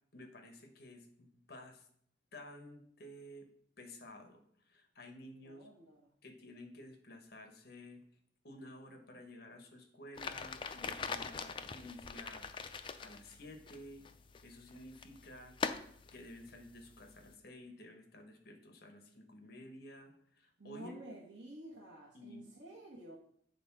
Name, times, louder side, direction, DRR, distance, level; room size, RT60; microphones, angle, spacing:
voice 1, 0.1-1.9 2.3-3.5 3.8-5.7 6.2-8.0 8.4-12.6 13.0-14.1 14.4-15.6 16.0-21.0 22.1-22.4, left 1 dB, 60° left, 5 dB, 1.1 m, -53 dB
voice 2, 5.4-6.0 20.6-23.2, right 1 dB, 80° right, -4 dB, 1.3 m, -51 dB
sound 1, 10.2-17.3, left 5 dB, 30° left, 0.4 m, -44 dB
8.0 x 4.0 x 5.9 m, 0.65 s
head